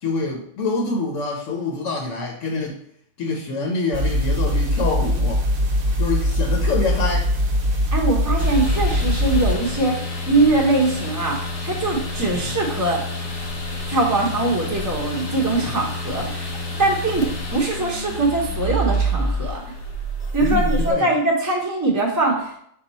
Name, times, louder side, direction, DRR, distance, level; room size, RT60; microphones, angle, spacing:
voice 1, 0.0-2.8 3.2-5.5 6.0-7.3 12.2-12.6 20.4-21.1, left 3 dB, 75° left, 1 dB, 1.0 m, -26 dB
sound 1, 3.9-9.6, equal, 50° right, 0.8 m, -21 dB
voice 2, 7.9-11.4 11.6-13.0 13.9-16.5 16.8-17.3 17.5-19.6 20.3-22.6, right 2 dB, 20° right, -2 dB, 0.6 m, -22 dB
sound 2, 8.4-20.9, equal, 45° left, 0.5 m, -28 dB
5.5 x 2.3 x 4.0 m, 0.69 s
omnidirectional pair, 1.4 m